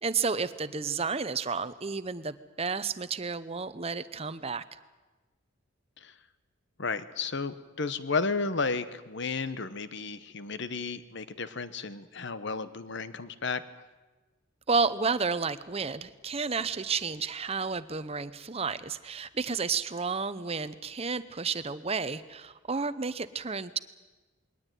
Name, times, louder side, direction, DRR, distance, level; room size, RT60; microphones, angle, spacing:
voice 1, 0.0-4.6 14.7-23.8, right 4 dB, 30° right, 13 dB, 0.7 m, -31 dB
voice 2, 6.8-13.6, left 4 dB, 55° left, 13 dB, 1.0 m, -33 dB
21.5 x 18.0 x 9.2 m, 1.2 s
head